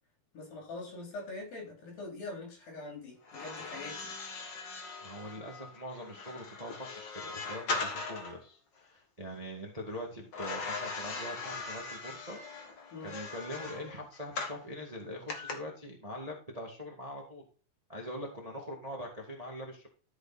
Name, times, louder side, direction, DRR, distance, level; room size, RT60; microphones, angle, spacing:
voice 1, 0.3-4.1 12.9-13.1, left 3 dB, 80° left, -1 dB, 5.2 m, -43 dB
sound 1, 3.2-8.4 10.3-14.6 15.3-15.5, left 3 dB, 50° left, 1.4 m, -40 dB
voice 2, 5.0-12.4 13.0-17.4 17.9-19.9, equal, 20° right, 0 dB, 1.0 m, -43 dB
13.0 x 5.4 x 4.2 m, 0.37 s
omnidirectional pair, 4.1 m